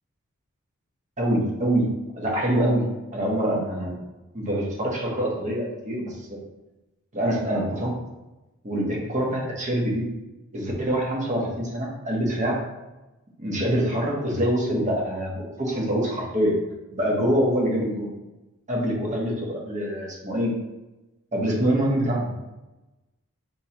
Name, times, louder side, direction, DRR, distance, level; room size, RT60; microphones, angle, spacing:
voice 1, 1.2-4.0 4.3-6.4 7.1-7.9 8.6-10.0 10.5-12.6 13.4-16.6 16.9-18.1 18.7-20.5 21.3-22.3, right 1 dB, 35° right, -2 dB, 1.0 m, -25 dB
5.4 x 3.0 x 2.9 m, 1.0 s
head